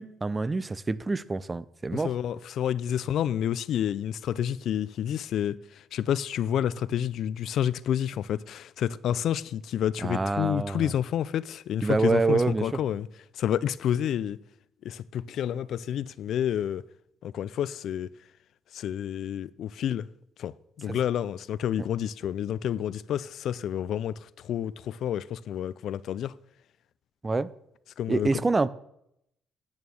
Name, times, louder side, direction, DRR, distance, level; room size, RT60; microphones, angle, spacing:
voice 1, 0.0-2.1 10.0-10.9 11.8-12.7 20.9-21.0 27.2-27.5 28.1-28.7, right 3 dB, 20° right, 0.5 m, -26 dB
voice 2, 1.9-13.1 13.4-14.4 14.8-16.8 17.2-18.1 18.7-20.1 20.4-26.3 28.0-28.4, left 10 dB, 70° left, 0.4 m, -29 dB
9.5 x 8.9 x 6.3 m
cardioid pair, 115°, 0 cm